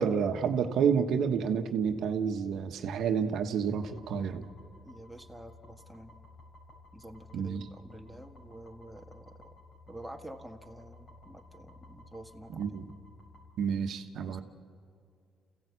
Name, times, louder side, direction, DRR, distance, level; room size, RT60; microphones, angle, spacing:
voice 1, 0.0-4.4 7.3-7.6 12.5-12.9 13.6-14.4, right 7 dB, 75° right, 7 dB, 1.2 m, -29 dB
sound 1, 3.8-13.5, left 2 dB, 55° left, 5.4 m, -54 dB
voice 2, 4.9-6.1 6.9-9.4 9.9-12.8 14.3-14.4, right 1 dB, 5° right, 3 dB, 1.6 m, -48 dB
28.5 x 15.5 x 8.2 m, 2.3 s
cardioid pair, 90°, 0 cm